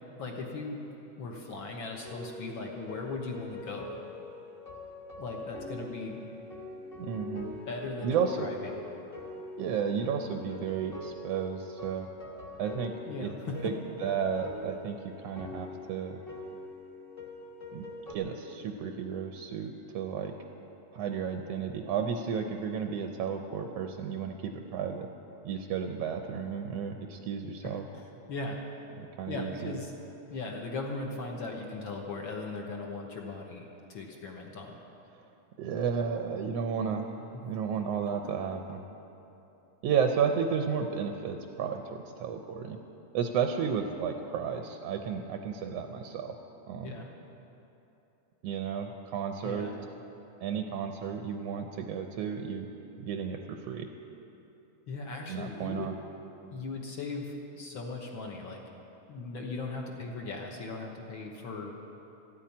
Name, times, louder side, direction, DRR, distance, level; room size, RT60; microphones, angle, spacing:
voice 1, 0.2-0.8 1.2-4.0 5.2-6.2 7.7-8.8 13.1-13.6 27.6-28.0 28.3-28.6 29.3-29.9 30.3-34.8 37.3-37.4 46.8-47.1 49.4-49.7 54.9-55.9 56.5-58.6 59.1-61.7, left 3 dB, 55° left, 0 dB, 1.5 m, -38 dB
sound 1, 2.0-18.1, left 2 dB, 30° left, 1.1 m, -44 dB
voice 2, 7.0-7.5 8.0-8.5 9.6-12.1 12.6-12.9 13.2-13.3 13.6-13.7 14.0-16.2 17.7-17.8 18.1-20.3 20.9-25.1 25.4-27.8 29.0-29.7 35.6-38.8 39.8-42.8 43.1-46.4 46.7-47.0 48.4-49.7 50.4-52.7 53.0-53.9 55.3-55.9, right 7 dB, 75° right, 5 dB, 1.5 m, -33 dB
14.0 x 8.7 x 9.5 m, 3.0 s
omnidirectional pair, 3.5 m